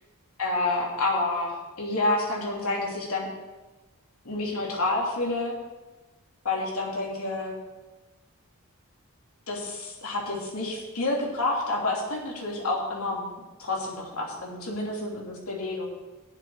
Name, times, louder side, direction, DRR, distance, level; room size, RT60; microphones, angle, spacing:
voice 1, 0.4-3.3 4.2-5.5 6.4-7.5 9.5-13.2 13.6-15.8, left 2 dB, 70° left, -2 dB, 3.0 m, -29 dB
7.6 x 7.5 x 8.0 m, 1.2 s
head